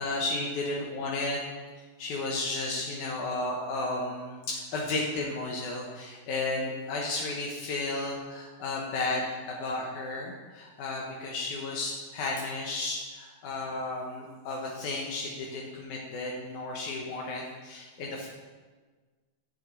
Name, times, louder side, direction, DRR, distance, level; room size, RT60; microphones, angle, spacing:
voice 1, 0.0-1.4 1.8-18.3, left 2 dB, 75° left, -1 dB, 2.4 m, -33 dB
10.5 x 7.8 x 4.0 m, 1.4 s
omnidirectional pair, 3.6 m